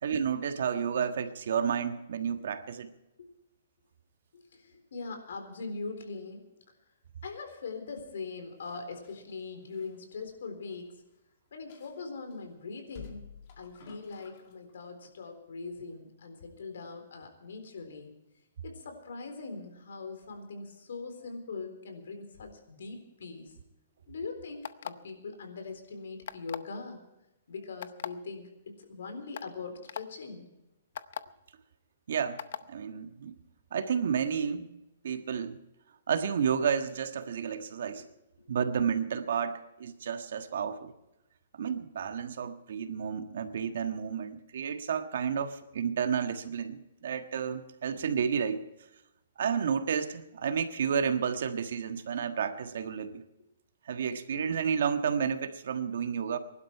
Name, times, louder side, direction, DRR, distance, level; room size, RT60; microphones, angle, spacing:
voice 1, 0.0-2.9 32.1-32.4 32.7-33.3 33.7-34.8 35.0-35.6 36.1-38.0 38.5-40.9 41.6-48.6 49.4-53.2 53.9-56.4, right 7 dB, 60° right, 8 dB, 1.4 m, -31 dB
voice 2, 4.3-6.4 7.2-11.0 11.5-13.3 13.6-18.1 18.6-23.5 24.1-27.0 27.5-30.5 38.4-38.5, left 4 dB, 70° left, 6 dB, 3.9 m, -41 dB
sound 1, 8.6-10.9 11.1-11.2 11.7-12.4 12.9-14.7 15.1-15.3, left 7 dB, 35° left, 2.2 m, -52 dB
sound 2, 24.6-25.1 26.3-26.7 27.8-28.1 28.8-28.9 29.3-29.5 29.9-30.0 31.0-31.2 32.4-32.6, left 9 dB, 55° left, 0.7 m, -37 dB
22.0 x 12.0 x 4.6 m, 0.92 s
hypercardioid pair, 170°, 0 cm